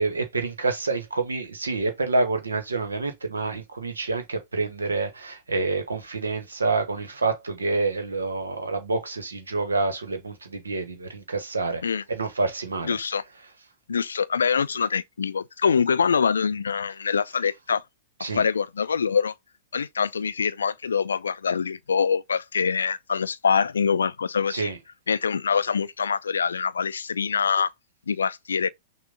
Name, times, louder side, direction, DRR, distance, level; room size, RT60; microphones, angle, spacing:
voice 1, 0.0-11.8 12.1-13.0 18.2-18.4 24.5-24.8, right 3 dB, 75° right, 1.0 m, -27 dB
voice 2, 12.8-13.2 13.9-17.8 18.2-19.4 19.7-24.7 25.1-27.7 28.1-28.7, left 6 dB, 70° left, 0.3 m, -24 dB
6.1 x 2.2 x 3.6 m
figure-of-eight pair, 100°, 0 cm